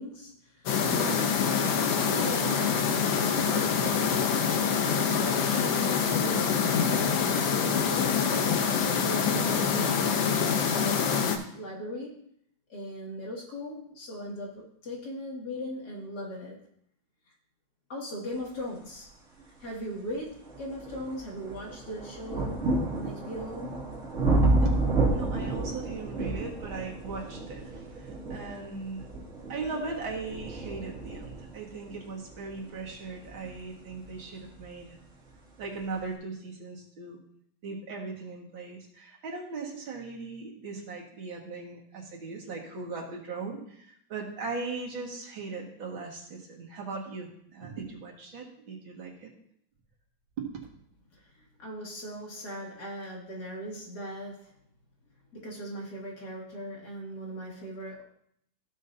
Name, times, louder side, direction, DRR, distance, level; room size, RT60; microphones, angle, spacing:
voice 1, 0.0-1.4 1.8-2.9 3.2-4.4 4.9-8.3 8.9-11.2 11.5-12.2 12.7-16.6 17.9-19.1 19.6-22.6 22.9-23.8 51.1-51.2 51.6-54.5 55.3-58.0, equal, 55° left, -3 dB, 2.8 m, -39 dB
sound 1, 0.7-11.4, left 6 dB, 80° left, 1.6 m, -26 dB
sound 2, 19.4-19.5 20.1-34.7 35.6-35.7, right 2 dB, 40° right, 2.5 m, -31 dB
voice 2, 25.1-29.1 29.5-35.0 35.6-37.2 37.6-49.3 50.4-50.5, right 4 dB, 85° right, -2 dB, 2.6 m, -38 dB
14.5 x 6.4 x 2.7 m, 0.69 s
omnidirectional pair, 2.1 m